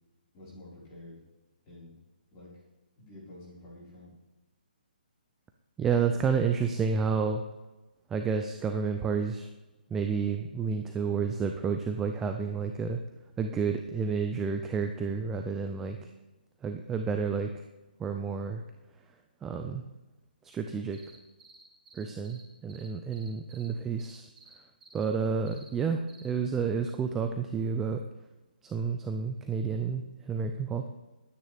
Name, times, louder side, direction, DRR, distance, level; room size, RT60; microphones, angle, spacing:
voice 1, 0.3-1.2 1.6-1.9 2.3-2.5 3.0-4.1, left 1 dB, 20° left, -7 dB, 4.6 m, -49 dB
voice 2, 5.8-7.4 8.1-9.5 9.9-13.0 13.4-16.0 16.6-17.5 18.0-18.6 19.4-19.8 20.4-21.0 21.9-24.3 24.9-28.0 28.6-30.9, right 5 dB, 5° right, 5 dB, 0.3 m, -30 dB
sound 1, 20.9-22.4 22.7-23.7 24.0-24.5 24.8-25.0 25.5-25.7 26.1-26.3, right 3 dB, 60° right, 4.0 m, -54 dB
20.0 x 9.2 x 3.4 m, 1.1 s
hypercardioid pair, 170°, 5 cm